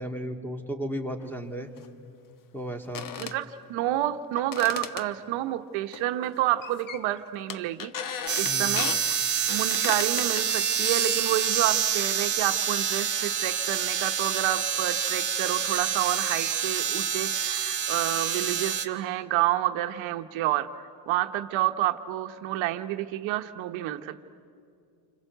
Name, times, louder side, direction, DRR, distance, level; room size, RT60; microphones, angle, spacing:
voice 1, 0.0-1.7 2.5-3.0 8.4-8.8, equal, 5° left, 4 dB, 2.4 m, -34 dB
sound 1, 1.2-1.3 1.8-1.9 2.9-3.4 4.4-5.5 5.9-6.3 6.6-7.2 7.5-9.0 9.5-10.9, left 7 dB, 45° left, 1.2 m, -36 dB
voice 2, 3.2-9.2 9.5-20.7 21.1-24.2, right 14 dB, 85° right, 8 dB, 1.1 m, -29 dB
sound 2, 8.3-18.9, right 8 dB, 40° right, 1.6 m, -27 dB
28.5 x 25.5 x 8.0 m, 2.4 s
cardioid pair, 105°, 46 cm